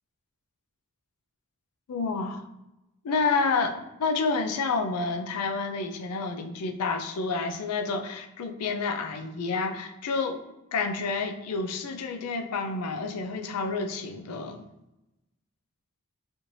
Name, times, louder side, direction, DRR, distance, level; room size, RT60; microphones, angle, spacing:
voice 1, 1.9-2.4 3.0-10.4 10.7-14.6, left 4 dB, 90° left, 6 dB, 0.4 m, -29 dB
4.3 x 3.0 x 2.6 m, 0.93 s
head